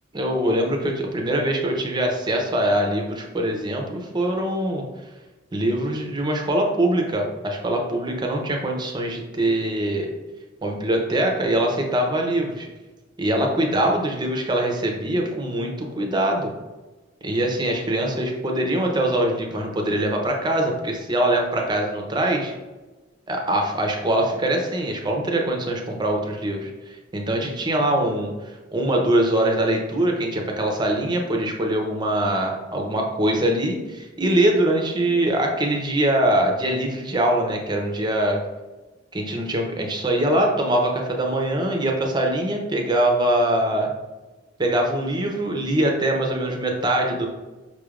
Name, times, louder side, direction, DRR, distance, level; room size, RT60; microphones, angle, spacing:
voice 1, 0.1-4.8 5.5-10.1 10.6-12.7 13.2-16.5 17.2-22.5 23.3-38.4 39.1-43.9 44.6-47.3, right 1 dB, 20° right, 1 dB, 0.6 m, -23 dB
5.5 x 3.2 x 2.4 m, 1.1 s
head